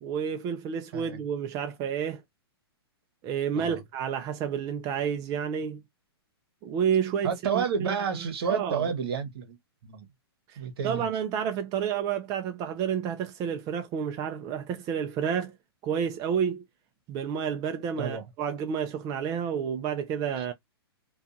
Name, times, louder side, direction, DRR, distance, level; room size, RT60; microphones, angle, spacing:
voice 1, 0.0-2.2 3.2-5.8 6.6-8.0 8.5-8.9 10.5-10.6 10.8-15.5 15.8-16.6 17.1-20.5, right 7 dB, 25° right, 0.4 m, -30 dB
voice 2, 7.2-9.6 9.8-10.1 10.6-11.1 18.0-18.2, right 6 dB, 65° right, 1.0 m, -30 dB
2.6 x 2.3 x 2.5 m
hypercardioid pair, 130°, 14 cm